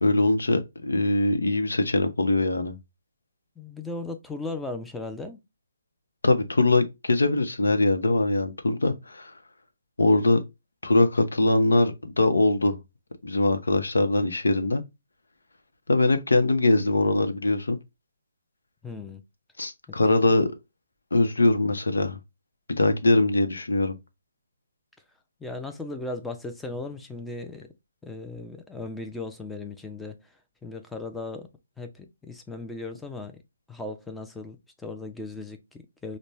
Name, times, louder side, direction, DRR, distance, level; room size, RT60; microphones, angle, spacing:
voice 1, 0.0-2.8 6.2-9.3 10.0-10.4 10.8-12.8 13.2-14.8 15.9-17.8 19.6-20.5 21.1-22.2 22.7-24.0, left 2 dB, 80° left, 0.8 m, -22 dB
voice 2, 3.6-5.4 18.8-19.2 19.9-20.0 20.3-20.5 25.4-27.7 28.0-31.5 31.8-33.4 33.7-36.2, left 2 dB, 5° left, 0.5 m, -37 dB
5.2 x 2.2 x 3.1 m
figure-of-eight pair, 145°, 0 cm